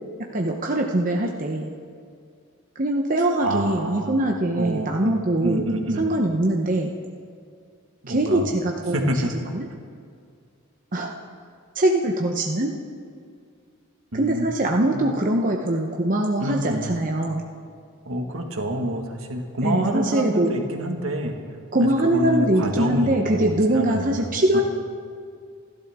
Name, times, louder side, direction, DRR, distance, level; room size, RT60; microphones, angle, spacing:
voice 1, 0.3-1.7 2.8-5.6 6.0-6.9 8.1-9.0 9.5-9.7 10.9-11.1 11.7-12.7 14.1-17.4 19.6-20.6 21.7-24.6, right 1 dB, 40° right, 0 dB, 0.9 m, -22 dB
voice 2, 3.4-4.2 4.6-5.1 5.4-6.1 8.0-8.5 8.9-9.3 14.1-14.5 14.9-15.0 16.4-17.0 18.1-21.3 21.8-24.1 24.5-24.6, right 1 dB, 70° right, 3 dB, 1.8 m, -27 dB
28.5 x 12.0 x 3.6 m, 2.2 s
head